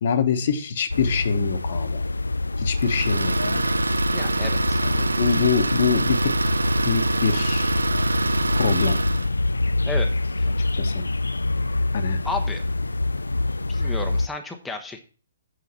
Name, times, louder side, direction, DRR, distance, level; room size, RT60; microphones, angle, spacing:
voice 1, 0.0-2.0 2.6-3.7 4.8-6.3 6.8-7.8 8.5-9.0 10.7-11.0 11.9-12.2, left 6 dB, 50° left, 7 dB, 1.2 m, -25 dB
sound 1, 0.9-14.3, left 2 dB, 80° left, 0.3 m, -25 dB
Idling, 2.8-9.3, right 3 dB, 80° right, 0.4 m, -25 dB
voice 2, 4.1-4.8 9.8-10.1 12.2-12.6 13.7-15.0, left 3 dB, 5° left, 2 dB, 0.9 m, -32 dB
8.3 x 3.9 x 6.9 m, 0.38 s
figure-of-eight pair, 130°, 0 cm